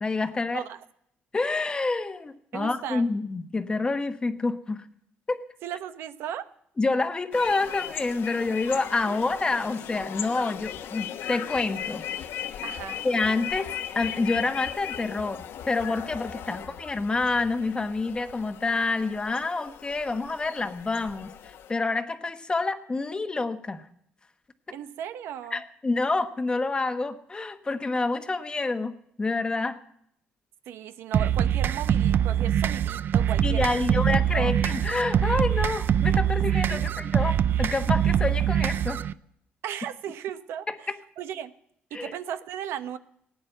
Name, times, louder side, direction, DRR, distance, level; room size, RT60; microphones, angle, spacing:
voice 1, 0.0-0.6 1.3-4.8 5.3-5.4 6.8-12.0 12.5-12.6 13.0-23.8 25.5-29.8 33.4-39.0 41.9-42.1, left 3 dB, 20° left, 9 dB, 1.2 m, -28 dB
voice 2, 2.5-3.1 5.6-6.5 9.1-9.2 12.6-13.0 16.5-16.6 24.7-25.6 30.7-34.0 34.3-34.5 36.7-36.9 39.6-41.5 41.9-43.0, right 9 dB, 85° right, 12 dB, 0.9 m, -36 dB
sound 1, 7.3-21.7, left 10 dB, 75° left, 1.2 m, -37 dB
sound 2, 31.1-39.1, right 10 dB, 55° right, 0.5 m, -24 dB
17.0 x 9.4 x 7.9 m, 0.73 s
cardioid pair, 105°, 4 cm